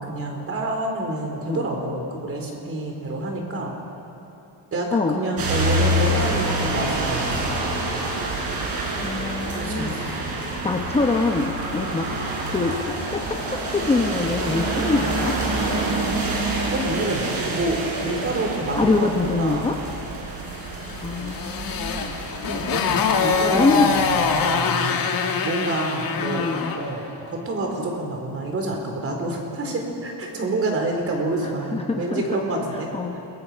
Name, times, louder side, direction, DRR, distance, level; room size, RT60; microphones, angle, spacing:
voice 1, 0.0-3.7 4.7-7.5 9.5-10.4 16.5-19.7 22.5-25.1 25.4-26.5 26.7-32.9, right 2 dB, 30° right, 1 dB, 4.1 m, -28 dB
sound 1, 5.4-24.5, right 1 dB, 55° right, 5.4 m, -27 dB
voice 2, 9.0-10.0 10.6-12.1 12.5-15.4 18.7-19.8 21.0-22.2 23.5-23.9 26.2-26.8 31.4-32.2 32.9-33.1, left 3 dB, 15° left, 2 dB, 0.9 m, -24 dB
Motorcycle, 20.8-26.9, left 5 dB, 55° left, 2.1 m, -24 dB
30.0 x 22.0 x 5.7 m, 2.8 s
cardioid pair, 170°, 42 cm